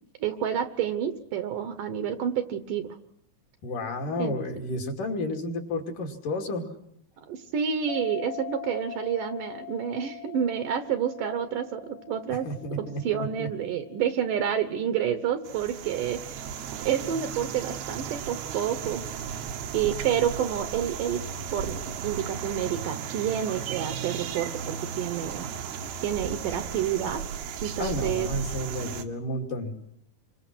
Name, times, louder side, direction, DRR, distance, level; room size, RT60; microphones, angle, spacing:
voice 1, 0.2-3.0 4.2-4.4 7.3-12.5 12.8-16.4 16.9-19.0 19.7-21.2 21.5-25.5 26.0-27.2 27.6-28.3, right 9 dB, 65° right, 10 dB, 2.5 m, -29 dB
voice 2, 3.6-6.7 12.5-13.5 20.1-20.2 27.8-29.7, left 1 dB, 60° left, 2 dB, 4.1 m, -32 dB
sound 1, 7.9-14.9, left 16 dB, 75° left, 2.8 m, -43 dB
sound 2, 15.4-29.0, right 7 dB, 85° right, 3.4 m, -35 dB
28.5 x 24.5 x 6.2 m, 0.73 s
omnidirectional pair, 4.4 m